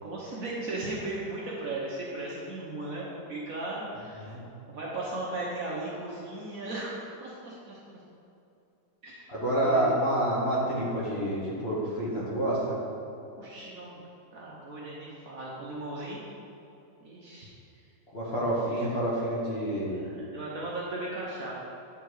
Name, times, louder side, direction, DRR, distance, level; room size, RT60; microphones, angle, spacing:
voice 1, 0.0-4.3 4.7-7.8 9.0-9.3 9.6-10.1 13.4-14.1 14.3-16.2 17.0-17.5 18.7-18.8 19.9-21.5, right 2 dB, 55° right, -5 dB, 1.1 m, -37 dB
voice 2, 9.3-12.8 18.1-20.1, right 1 dB, 40° left, -7 dB, 1.2 m, -28 dB
8.2 x 3.6 x 4.7 m, 2.8 s
omnidirectional pair, 2.1 m